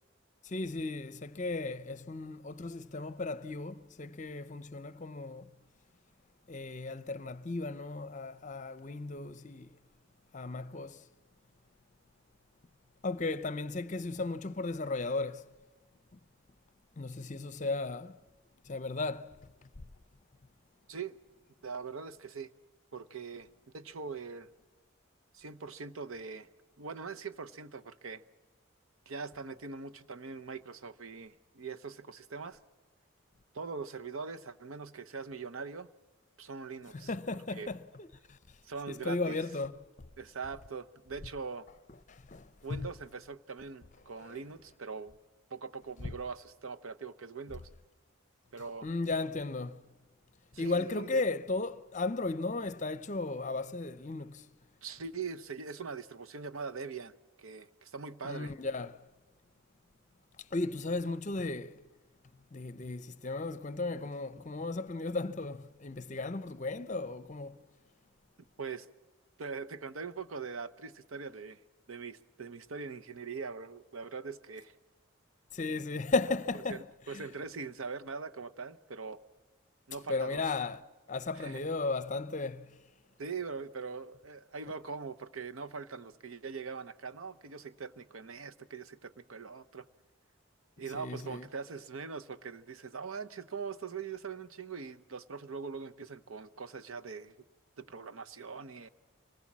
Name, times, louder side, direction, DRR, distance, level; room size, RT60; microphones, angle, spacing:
voice 1, 0.4-5.5 6.5-9.7 10.3-11.0 13.0-15.5 16.1-16.2 17.0-18.2 18.6-19.4 19.6-19.7 36.9-38.4 38.9-39.7 42.1-42.9 44.3-44.4 46.0-46.1 48.8-49.8 50.6-54.5 58.2-59.0 60.5-61.8 62.5-67.6 75.5-76.8 77.1-77.3 80.1-80.8 81.1-82.8 90.9-91.5, left 3 dB, 35° left, 0.6 m, -35 dB
voice 2, 21.6-22.5 22.9-23.5 23.7-24.5 25.3-26.5 26.8-28.2 29.1-32.6 33.5-35.9 36.4-37.8 38.6-39.4 40.2-41.7 42.6-45.1 45.5-47.7 48.5-48.9 50.5-51.2 54.8-58.5 68.6-68.9 69.4-71.6 71.9-74.7 76.7-79.2 79.9-80.4 81.3-81.6 83.2-89.9 90.8-97.3 97.8-98.9, right 5 dB, 80° right, 0.8 m, -42 dB
25.5 x 19.5 x 7.4 m
head